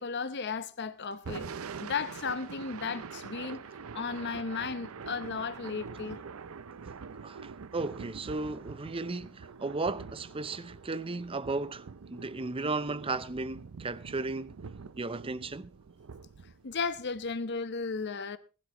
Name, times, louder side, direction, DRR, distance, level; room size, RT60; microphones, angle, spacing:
voice 1, 0.0-1.5 1.8-3.6 3.9-6.2 16.6-18.4, left 5 dB, 55° left, 0.9 m, -35 dB
Thunder / Rain, 1.1-17.4, right 5 dB, 80° right, 0.6 m, -45 dB
voice 2, 7.2-14.5 15.0-15.7, right 3 dB, 25° right, 0.6 m, -35 dB
20.0 x 12.0 x 3.0 m
head